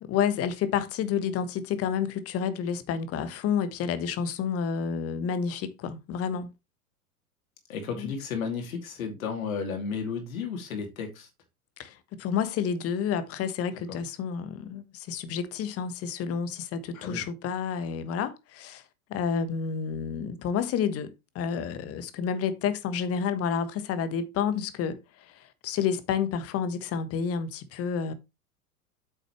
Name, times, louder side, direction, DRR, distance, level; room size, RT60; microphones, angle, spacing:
voice 1, 0.0-6.5 8.0-8.1 11.8-18.8 19.1-25.0 25.3-28.1, left 7 dB, 30° left, 1.3 m, -30 dB
voice 2, 7.7-11.3 13.9-14.0 16.9-17.2, left 5 dB, 65° left, 2.8 m, -33 dB
8.4 x 6.6 x 3.1 m
figure-of-eight pair, 90°, 44 cm